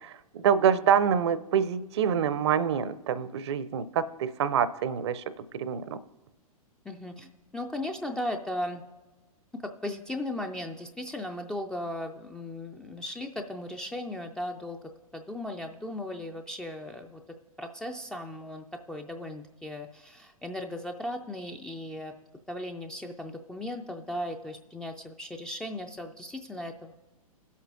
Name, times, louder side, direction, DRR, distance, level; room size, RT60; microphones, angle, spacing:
voice 1, 0.0-5.2 5.5-6.0, right 8 dB, 45° right, 15 dB, 0.6 m, -26 dB
voice 2, 6.8-8.8 9.5-14.8 15.1-17.2 17.6-22.1 22.5-26.9, left 1 dB, 5° left, 4 dB, 0.3 m, -37 dB
19.5 x 8.2 x 2.5 m, 1.1 s
figure-of-eight pair, 105°, 19 cm